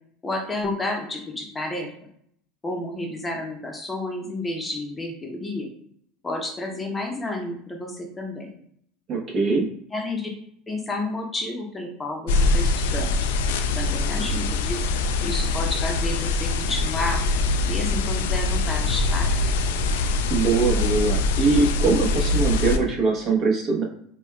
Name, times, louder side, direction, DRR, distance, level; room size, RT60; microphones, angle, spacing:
voice 1, 0.2-1.9 2.6-5.7 6.2-8.5 9.9-10.3 10.7-13.1 13.8-14.8 15.2-17.2 17.6-19.4, left 2 dB, 15° left, 1 dB, 0.7 m, -30 dB
voice 2, 9.1-9.7 20.3-23.8, right 4 dB, 45° right, -1 dB, 1.0 m, -22 dB
sound 1, 12.3-22.8, left 3 dB, 85° left, 0.3 m, -23 dB
5.1 x 2.2 x 2.2 m, 0.66 s
supercardioid pair, 110°, 0 cm